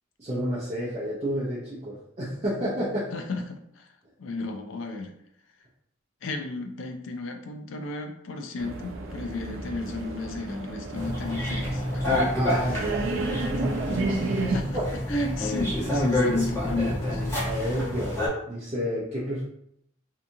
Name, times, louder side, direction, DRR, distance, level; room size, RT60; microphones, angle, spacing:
voice 1, 0.2-3.1 12.3-14.2 14.5-14.9 17.4-18.2 18.5-19.4, equal, 30° right, -8 dB, 0.6 m, -30 dB
voice 2, 3.1-3.9 4.2-5.1 6.2-12.2 14.5-14.8 15.1-17.2, left 3 dB, 70° left, 5 dB, 0.4 m, -34 dB
sound 1, 8.6-14.6, right 3 dB, 75° right, 0.5 m, -32 dB
sound 2, 10.9-18.3, left 1 dB, 15° left, 0.7 m, -28 dB
2.7 x 2.3 x 2.7 m, 0.73 s
head